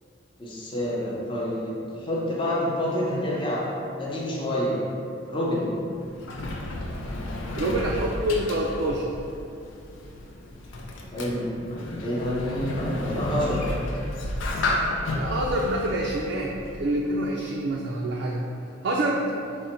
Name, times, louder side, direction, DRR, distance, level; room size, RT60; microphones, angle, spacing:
voice 1, 0.4-3.7 4.0-4.8 5.3-5.7 11.1-13.6, left 1 dB, 25° left, -5 dB, 0.6 m, -28 dB
Sliding door, 5.8-17.2, left 1 dB, 75° left, 0.4 m, -32 dB
voice 2, 7.5-9.2 15.1-18.4 18.8-19.3, right 1 dB, 60° right, -2 dB, 0.3 m, -26 dB
3.8 x 2.1 x 4.3 m, 2.7 s
head